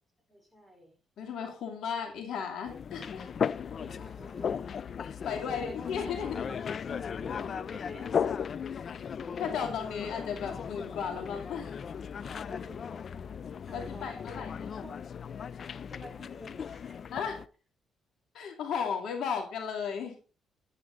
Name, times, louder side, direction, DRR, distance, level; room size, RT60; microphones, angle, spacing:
voice 1, 0.3-1.0 3.5-4.7 5.1-6.0 6.2-8.5 9.0-9.1 12.2-13.4 13.7-14.4 14.8-15.0 15.9-17.1, equal, 10° left, 3 dB, 4.6 m, -50 dB
voice 2, 1.2-3.3 5.0-6.4 8.9-9.0 9.4-11.7 13.7-14.7 17.1-17.4 18.3-20.3, left 6 dB, 75° left, 4 dB, 2.4 m, -35 dB
sound 1, 2.6-17.5, left 7 dB, 50° left, 0.4 m, -36 dB
10.5 x 9.4 x 3.9 m, 0.35 s
cardioid pair, 90°, 0 cm